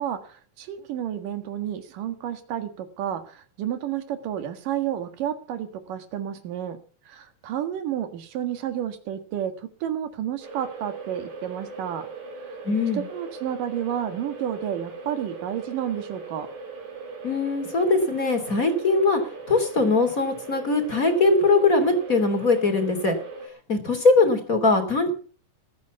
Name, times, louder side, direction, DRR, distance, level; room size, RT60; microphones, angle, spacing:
voice 1, 0.0-6.8 7.1-12.1 12.9-16.5, right 10 dB, 90° right, 9 dB, 3.4 m, -31 dB
sound 1, 10.4-23.5, right 4 dB, 65° right, 5.2 m, -39 dB
voice 2, 12.6-13.0 17.2-19.2 19.5-23.1 23.7-25.1, left 3 dB, 25° left, 6 dB, 3.1 m, -21 dB
20.5 x 9.5 x 7.0 m, 0.41 s
omnidirectional pair, 3.7 m